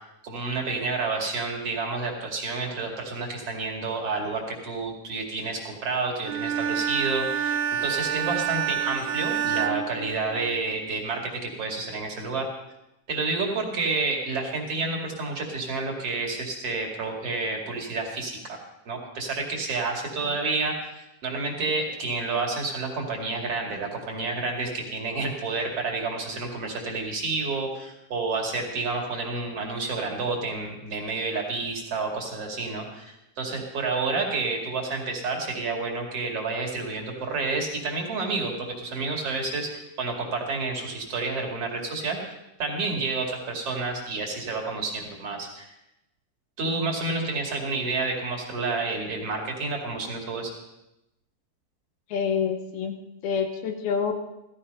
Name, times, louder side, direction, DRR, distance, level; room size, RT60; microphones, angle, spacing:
voice 1, 0.2-12.5 13.1-18.6 18.9-20.7 21.2-42.3 42.6-45.7 46.6-50.5, right 3 dB, 40° right, 1 dB, 3.1 m, -29 dB
Bowed string instrument, 6.2-10.7, right 9 dB, 90° right, 3.0 m, -28 dB
voice 2, 52.1-53.0 53.2-54.1, left 6 dB, 75° left, 6 dB, 2.9 m, -27 dB
16.5 x 14.5 x 5.4 m, 0.89 s
omnidirectional pair, 4.5 m